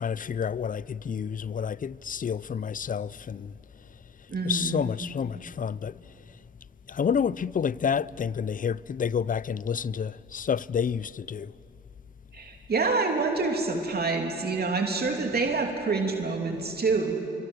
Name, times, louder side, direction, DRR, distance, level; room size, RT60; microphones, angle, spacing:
voice 1, 0.0-3.5 4.4-5.9 6.9-11.5, left 7 dB, 45° left, 0.5 m, -29 dB
voice 2, 4.3-4.8 12.3-17.2, right 4 dB, 55° right, 2.8 m, -27 dB
28.0 x 25.0 x 7.9 m
cardioid pair, 55°, 20 cm